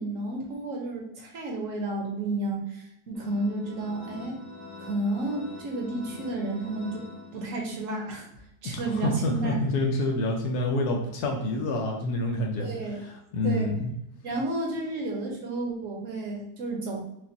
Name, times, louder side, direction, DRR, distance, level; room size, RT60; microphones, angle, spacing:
voice 1, 0.0-4.4 4.8-8.3 8.6-9.6 12.6-13.0 13.4-13.7 14.2-17.0, right 2 dB, 60° right, -1 dB, 1.2 m, -31 dB
sound 1, 3.1-7.9, left 3 dB, 40° left, 0.7 m, -45 dB
voice 2, 8.6-12.7 13.0-13.8, left 1 dB, 80° left, 1 dB, 1.2 m, -27 dB
5.0 x 2.4 x 2.7 m, 0.79 s
omnidirectional pair, 1.6 m